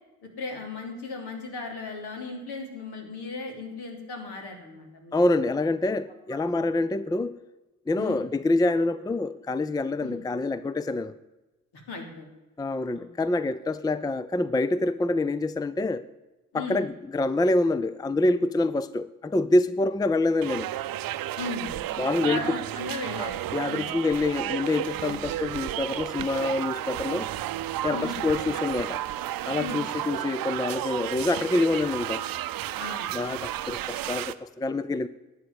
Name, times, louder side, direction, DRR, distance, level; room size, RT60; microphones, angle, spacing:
voice 1, 0.4-5.2 6.3-6.5 8.0-8.2 10.0-10.2 11.7-12.3 12.9-13.1 16.5-16.8 21.4-21.7 22.2-24.0 25.1-25.3 27.9-28.2 29.6-29.9 32.8-33.1, left 3 dB, 65° left, 2 dB, 3.1 m, -37 dB
voice 2, 5.1-7.4 7.9-11.2 12.6-16.1 16.5-20.7 22.0-22.6 23.5-27.3 27.8-29.0 29.5-32.2 33.1-35.1, left 2 dB, 10° left, 16 dB, 0.5 m, -26 dB
sound 1, 20.4-34.3, right 13 dB, 55° right, 0.7 m, -32 dB
12.0 x 8.4 x 8.1 m, 1.1 s
hypercardioid pair, 40°, 42 cm